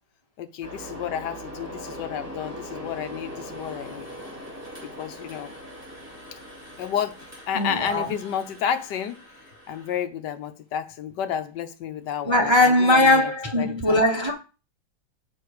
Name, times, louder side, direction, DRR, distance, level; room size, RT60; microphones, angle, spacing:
voice 1, 0.4-4.1 4.8-5.5 6.8-7.2 7.5-9.2 9.7-14.0, left 8 dB, 70° left, 1.3 m, -31 dB
sound 1, 0.6-10.0, equal, 10° right, 2.9 m, -41 dB
voice 2, 7.5-8.1 12.2-14.3, left 1 dB, 45° right, 0.3 m, -20 dB
6.5 x 5.1 x 4.8 m
omnidirectional pair, 2.1 m